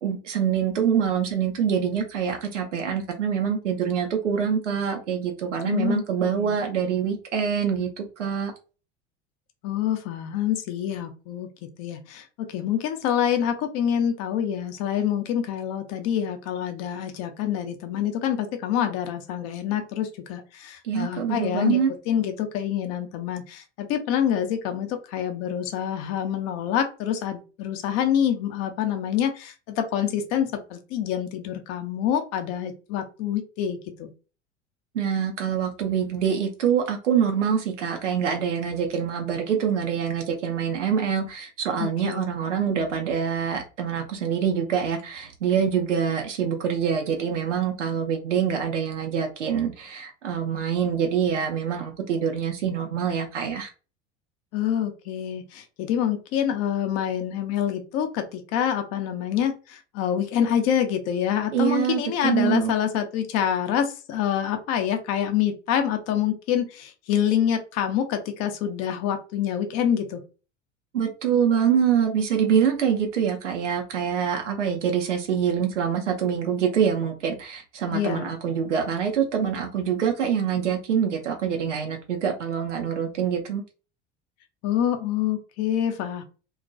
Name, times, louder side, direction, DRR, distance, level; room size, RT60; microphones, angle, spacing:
voice 1, 0.0-8.5 20.8-21.9 34.9-53.7 61.5-62.7 70.9-83.6, right 7 dB, 80° right, 3 dB, 0.6 m, -25 dB
voice 2, 5.6-6.6 9.6-11.5 11.8-21.8 22.1-34.1 41.8-42.3 54.5-70.2 77.9-78.4 84.6-86.2, left 9 dB, 45° left, 6 dB, 0.6 m, -26 dB
2.3 x 2.1 x 2.5 m, 0.33 s
figure-of-eight pair, 75°, 36 cm